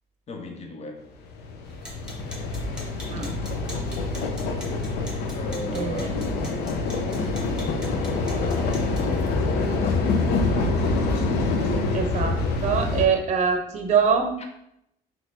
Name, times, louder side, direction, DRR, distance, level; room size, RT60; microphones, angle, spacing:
voice 1, 0.3-1.1 5.3-6.4 7.9-11.0 11.4-12.1, left 2 dB, 40° left, 4 dB, 0.9 m, -38 dB
sound 1, 1.2-13.1, left 3 dB, 75° left, 0.7 m, -26 dB
sound 2, 1.6-9.1, equal, 5° right, 1.7 m, -43 dB
voice 2, 5.7-6.1 11.9-12.3 12.6-14.4, right 6 dB, 40° right, 5 dB, 0.7 m, -23 dB
4.2 x 3.1 x 3.9 m, 0.78 s
cardioid pair, 110°, 17 cm